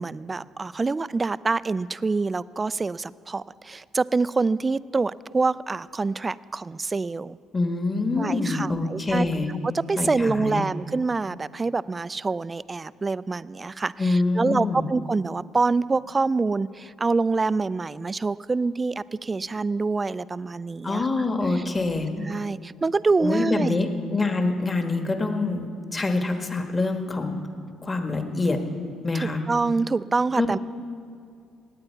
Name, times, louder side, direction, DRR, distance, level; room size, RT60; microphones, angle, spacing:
voice 1, 0.0-7.4 8.2-9.3 9.6-21.1 21.5-21.6 22.2-23.8 29.2-30.6, right 3 dB, 30° right, 18 dB, 0.3 m, -26 dB
voice 2, 7.5-9.5 10.0-10.6 14.0-14.9 20.8-22.1 23.2-27.4 27.8-28.6 29.0-29.4 30.4-30.5, left 3 dB, 30° left, 5 dB, 1.5 m, -25 dB
18.0 x 8.9 x 4.6 m, 2.4 s
supercardioid pair, 60°, 0 cm